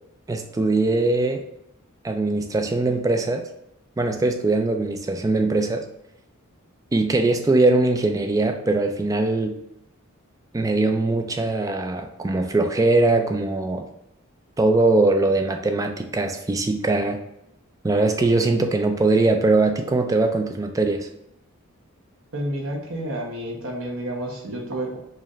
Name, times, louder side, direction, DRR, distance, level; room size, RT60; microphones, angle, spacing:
voice 1, 0.3-1.4 2.0-3.5 4.0-5.9 6.9-9.6 10.5-13.9 14.6-17.2 17.8-21.1, right 2 dB, 15° right, 5 dB, 0.3 m, -21 dB
voice 2, 22.3-25.0, right 1 dB, 65° right, 0 dB, 1.0 m, -30 dB
4.9 x 2.5 x 3.0 m, 0.83 s
head